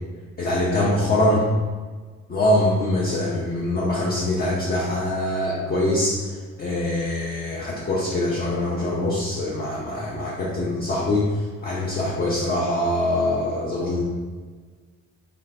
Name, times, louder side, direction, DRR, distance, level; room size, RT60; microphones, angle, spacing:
voice 1, 0.4-1.4 2.3-14.0, left 1 dB, 30° left, -5 dB, 0.5 m, -23 dB
2.5 x 2.4 x 3.2 m, 1.5 s
cardioid pair, 90°, 30 cm